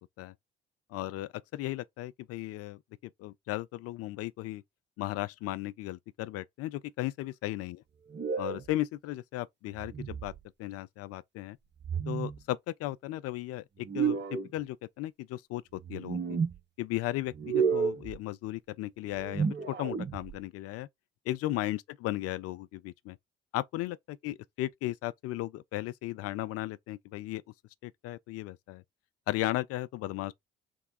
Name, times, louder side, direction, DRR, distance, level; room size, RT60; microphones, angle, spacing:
voice 1, 0.9-2.8 3.2-4.6 5.0-7.8 8.4-10.3 10.6-11.6 12.1-16.4 16.8-20.9 21.3-23.2 23.5-27.4 27.8-28.8 29.3-30.3, left 16 dB, 55° left, 0.4 m, -36 dB
sound 1, 8.1-8.7 9.7-10.4 11.8-12.4 13.8-14.5 15.8-16.6 17.3-18.2 19.1-20.4, right 6 dB, 35° right, 1.2 m, -31 dB
3.6 x 2.2 x 4.0 m
hypercardioid pair, 50°, 29 cm